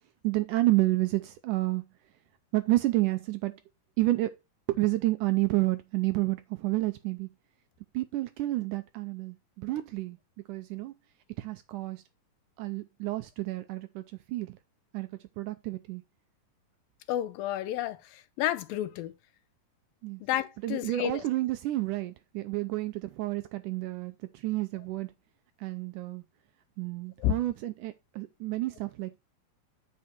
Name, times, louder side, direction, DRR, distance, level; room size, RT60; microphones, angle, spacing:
voice 1, 0.2-1.9 2.5-3.6 4.0-4.3 4.7-7.3 7.9-10.2 10.5-10.9 11.4-12.0 12.6-14.0 14.3-14.6 14.9-15.1 15.4-16.0 20.0-20.2 20.6-25.1 25.6-26.2 26.8-29.2, right 18 dB, 80° right, 1.9 m, -30 dB
voice 2, 17.1-19.1 20.2-21.2 27.2-27.3, left 13 dB, 85° left, 2.4 m, -31 dB
8.7 x 5.5 x 4.3 m
omnidirectional pair, 4.1 m